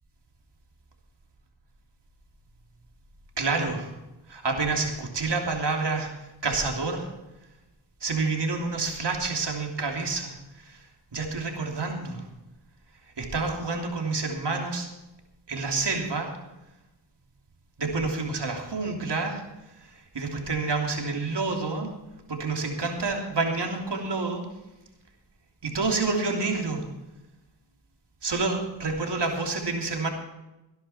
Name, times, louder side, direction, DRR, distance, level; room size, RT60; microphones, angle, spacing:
voice 1, 3.4-3.9 4.3-6.1 6.4-7.1 8.0-10.3 10.6-10.8 11.1-12.2 13.2-14.9 15.5-16.3 17.8-19.4 20.1-21.9 22.3-24.4 25.6-26.8 28.2-30.1, right 3 dB, 70° right, 2 dB, 3.2 m, -28 dB
18.5 x 10.5 x 4.4 m, 0.98 s
cardioid pair, 55°, 44 cm